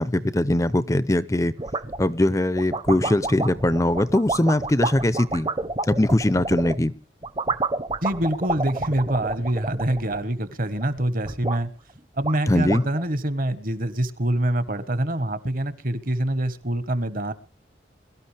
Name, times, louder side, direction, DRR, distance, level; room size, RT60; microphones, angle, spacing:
voice 1, 0.0-1.5 2.0-5.5 5.9-6.9 12.5-12.8, left 1 dB, 20° left, 15 dB, 0.6 m, -21 dB
sound 1, 1.6-2.1 2.5-6.8 7.2-10.5 10.8-11.6 12.0-12.1 12.2-13.1, right 2 dB, 30° right, 0.8 m, -29 dB
voice 2, 8.0-11.7 12.2-17.3, right 1 dB, 50° right, 13 dB, 1.4 m, -25 dB
22.5 x 12.5 x 3.4 m, 0.37 s
head